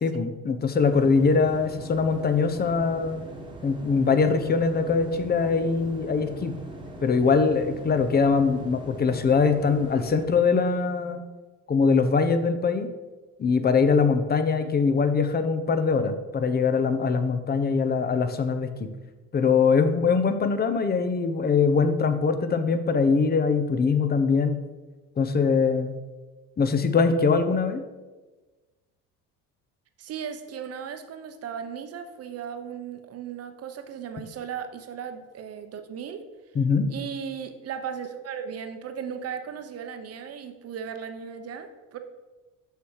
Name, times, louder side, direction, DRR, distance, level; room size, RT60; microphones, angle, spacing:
voice 1, 0.0-3.2 3.6-6.5 7.0-11.2 11.7-12.9 13.4-18.9 19.3-24.6 25.2-26.0 26.6-27.8 36.5-36.9, left 5 dB, 30° left, 9 dB, 0.8 m, -22 dB
sound 1, 0.8-10.3, right 1 dB, 15° right, 1.4 m, -41 dB
voice 2, 30.0-36.3 36.9-42.0, right 7 dB, 50° right, 8 dB, 0.9 m, -36 dB
6.7 x 6.4 x 4.7 m, 1.2 s
cardioid pair, 105°, 32 cm